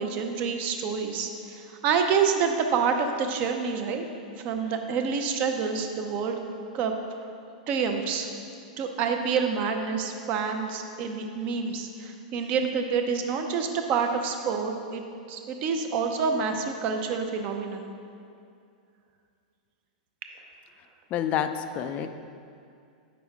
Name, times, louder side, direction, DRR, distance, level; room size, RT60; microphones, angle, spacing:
voice 1, 0.0-4.1 4.4-6.4 6.7-6.9 7.7-8.3 8.8-15.0 15.3-17.9, right 6 dB, 35° right, 4 dB, 0.7 m, -27 dB
voice 2, 21.1-22.1, left 9 dB, 30° left, 9 dB, 0.4 m, -28 dB
8.6 x 6.0 x 3.5 m, 2.4 s
hypercardioid pair, 140°, 4 cm